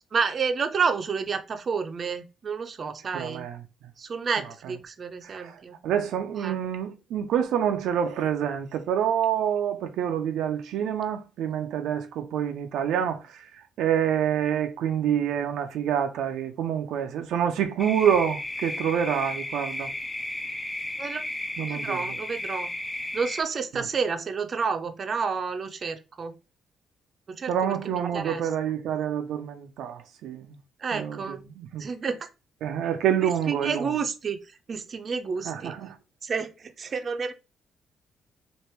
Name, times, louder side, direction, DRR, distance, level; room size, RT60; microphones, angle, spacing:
voice 1, 0.1-3.5 4.0-5.7 6.4-6.6 21.0-21.2 21.7-22.7 23.1-26.3 27.3-28.4 30.8-31.4 31.8-32.3 33.2-34.4 34.7-35.7 36.2-37.3, right 5 dB, 45° right, 0.6 m, -30 dB
voice 2, 3.1-3.6 4.6-4.7 5.2-13.5 13.8-19.9 21.6-22.2 23.7-23.8 27.5-30.6 30.9-31.9 32.6-33.9 35.5-35.9, right 9 dB, 85° right, 0.5 m, -27 dB
sound 1, 17.8-23.4, left 1 dB, 15° left, 0.5 m, -34 dB
3.2 x 2.5 x 4.4 m
cardioid pair, 90°, 0 cm